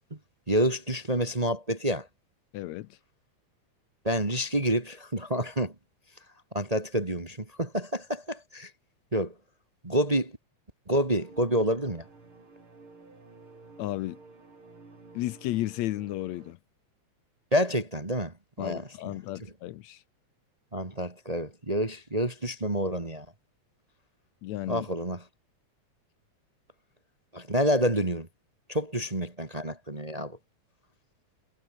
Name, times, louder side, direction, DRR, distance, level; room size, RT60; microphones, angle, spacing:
voice 1, 0.5-2.1 4.0-5.7 6.5-8.7 9.1-9.3 9.8-10.3 10.9-12.0 17.5-18.9 20.7-23.3 24.7-25.2 27.3-28.3 28.7-30.4, equal, 15° right, 1.4 m, -28 dB
voice 2, 2.5-2.9 13.8-14.2 15.1-16.6 18.6-20.0 24.4-24.9, left 15 dB, 75° left, 2.0 m, -33 dB
sound 1, 11.1-16.5, right 3 dB, 45° right, 6.2 m, -52 dB
omnidirectional pair, 3.3 m